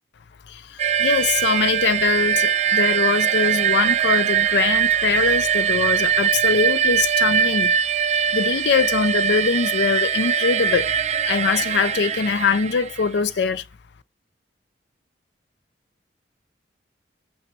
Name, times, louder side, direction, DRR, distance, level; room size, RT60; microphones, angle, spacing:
voice 1, 0.5-7.7 8.3-10.9 11.2-13.6, left 5 dB, 65° left, 0.4 m, -22 dB
sound 1, 0.8-13.2, right 8 dB, 40° right, 0.4 m, -21 dB
6.3 x 5.8 x 4.4 m
head